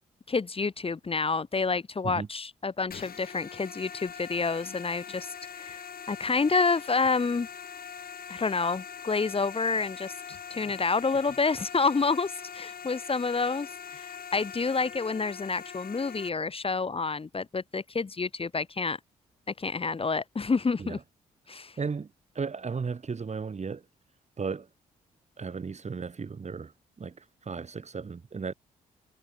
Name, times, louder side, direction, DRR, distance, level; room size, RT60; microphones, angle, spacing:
voice 1, 0.3-5.3 5.5-7.5 8.3-10.1 10.5-19.0 19.6-21.0 21.5-21.7, left 4 dB, 35° left, 1.3 m, -28 dB
sound 1, 2.9-16.3, left 7 dB, 60° left, 4.9 m, -42 dB
voice 2, 21.8-22.1 22.4-23.8 24.4-24.7 25.4-26.7 27.0-27.1 27.5-28.5, right 5 dB, 40° right, 2.5 m, -34 dB
supercardioid pair, 50°, 17 cm